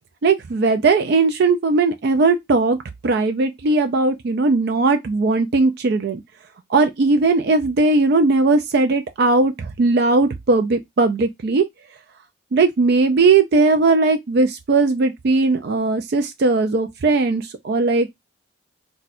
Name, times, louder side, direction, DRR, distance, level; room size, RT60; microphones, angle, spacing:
voice 1, 0.2-2.8 3.0-6.2 6.7-11.6 12.5-18.1, right 3 dB, 55° right, 0.4 m, -18 dB
2.5 x 2.2 x 4.0 m
head